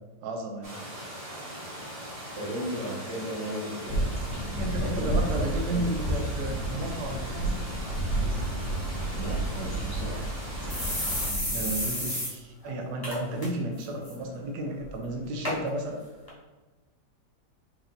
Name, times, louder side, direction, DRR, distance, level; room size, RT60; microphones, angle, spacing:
voice 1, 0.2-0.8 4.6-7.6 11.5-16.0, right 1 dB, 75° right, 1 dB, 1.2 m, -33 dB
sound 1, 0.6-11.3, equal, 25° right, 0.8 m, -40 dB
voice 2, 2.4-4.3 4.7-5.4 5.7-5.8 9.1-10.3, right 1 dB, 45° right, -6 dB, 1.8 m, -35 dB
sound 2, 3.8-11.9, right 1 dB, 80° left, 1.5 m, -31 dB
sound 3, 10.2-10.3 10.7-12.3 12.6-12.7 13.0-13.5 13.8-14.1 14.8-14.9 15.4-15.6 16.3-16.4, left 1 dB, 15° left, 1.0 m, -31 dB
4.6 x 2.6 x 3.8 m, 1.2 s
omnidirectional pair, 1.8 m